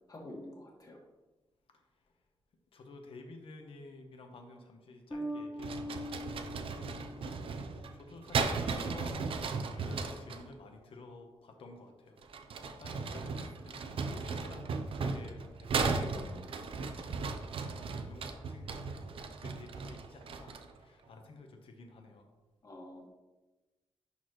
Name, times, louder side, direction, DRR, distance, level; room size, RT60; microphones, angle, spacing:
voice 1, 0.1-1.0 22.6-23.1, left 1 dB, 40° left, -1 dB, 1.7 m, -47 dB
voice 2, 2.7-19.2 19.4-22.3, left 2 dB, 70° left, 4 dB, 1.1 m, -52 dB
Bass guitar, 5.1-8.1, equal, 10° left, 1.2 m, -42 dB
sound 1, 5.6-10.4 12.2-20.8, right 4 dB, 70° right, 0.6 m, -36 dB
11.0 x 4.2 x 3.1 m, 1.1 s
wide cardioid pair, 125°, 10 cm